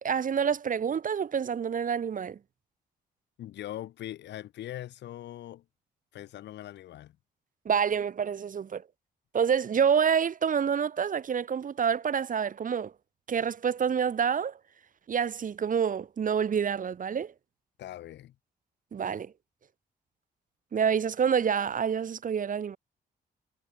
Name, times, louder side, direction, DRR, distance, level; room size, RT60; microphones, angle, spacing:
voice 1, 0.0-2.4 7.6-8.8 9.3-12.9 13.3-14.6 15.1-17.3 18.9-19.3 20.7-22.8, right 7 dB, 50° right, 1.2 m, -27 dB
voice 2, 3.4-5.6 6.1-7.1 17.8-18.3, left 13 dB, 80° left, 4.4 m, -41 dB
supercardioid pair, 65°, 18 cm